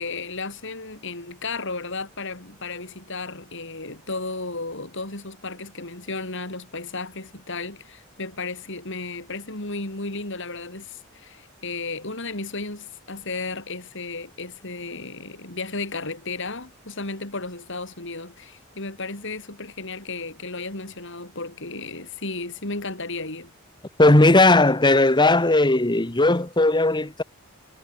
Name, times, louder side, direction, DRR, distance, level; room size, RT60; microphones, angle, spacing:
voice 1, 0.0-23.5, left 3 dB, 60° left, 5.9 m, -34 dB
voice 2, 24.0-27.2, left 2 dB, 20° left, 1.4 m, -17 dB
head